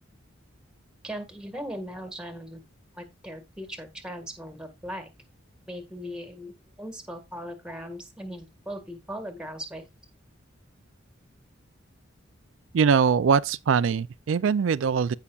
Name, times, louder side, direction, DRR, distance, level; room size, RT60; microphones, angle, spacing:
voice 1, 1.0-2.6 2.9-5.1 5.7-6.5 6.8-9.9, equal, 5° right, 1.7 m, -38 dB
voice 2, 12.7-15.1, right 6 dB, 70° right, 0.4 m, -22 dB
15.5 x 5.7 x 2.4 m
head